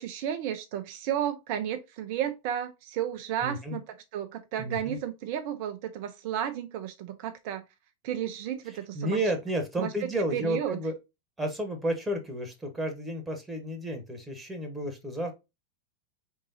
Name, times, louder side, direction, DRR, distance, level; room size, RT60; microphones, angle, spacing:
voice 1, 0.0-7.6 8.0-9.2 9.8-10.8, right 10 dB, 45° right, 0.5 m, -33 dB
voice 2, 3.4-3.8 4.6-5.0 8.9-10.9 11.4-15.3, right 1 dB, 5° right, 1.3 m, -31 dB
4.6 x 3.7 x 2.7 m
figure-of-eight pair, 90°, 0 cm